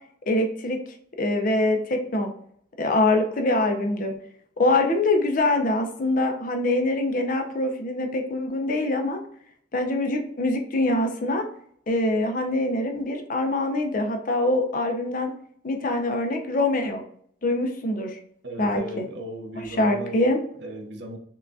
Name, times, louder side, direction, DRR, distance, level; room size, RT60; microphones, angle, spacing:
voice 1, 0.3-0.8 1.2-2.3 2.8-4.1 4.6-9.2 9.7-11.5 11.9-15.3 15.6-17.0 17.4-18.2 18.6-19.0 19.8-20.4, left 2 dB, 45° left, 0.5 m, -24 dB
voice 2, 18.4-20.2 20.6-21.2, right 1 dB, 60° right, 0.6 m, -36 dB
5.5 x 2.4 x 2.5 m
head